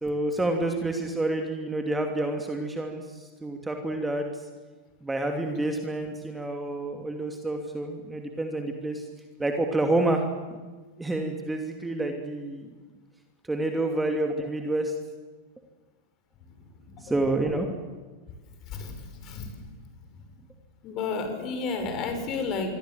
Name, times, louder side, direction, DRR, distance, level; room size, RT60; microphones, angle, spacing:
voice 1, 0.0-4.3 5.0-9.1 9.4-10.2 11.0-12.7 13.5-14.9 17.0-17.7, right 2 dB, 10° right, 4 dB, 2.7 m, -28 dB
voice 2, 20.8-22.7, left 4 dB, 35° left, 7 dB, 6.0 m, -31 dB
26.5 x 23.5 x 7.8 m, 1.3 s
figure-of-eight pair, 90°, 0 cm